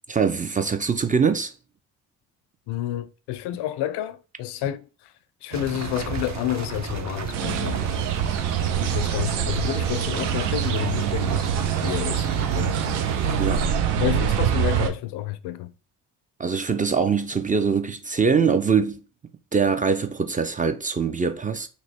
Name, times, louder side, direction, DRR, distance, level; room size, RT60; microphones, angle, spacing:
voice 1, 0.1-1.5 13.4-13.7 16.4-19.0 19.5-21.7, right 5 dB, 20° right, 0.4 m, -23 dB
voice 2, 2.7-5.1 5.4-8.0 8.8-12.8 13.9-15.7, left 13 dB, 65° left, 0.5 m, -30 dB
sound 1, 5.5-13.7, right 5 dB, 40° right, 0.8 m, -33 dB
sound 2, 7.3-14.9, right 9 dB, 70° right, 0.7 m, -25 dB
2.9 x 2.3 x 4.2 m
hypercardioid pair, 55°, 43 cm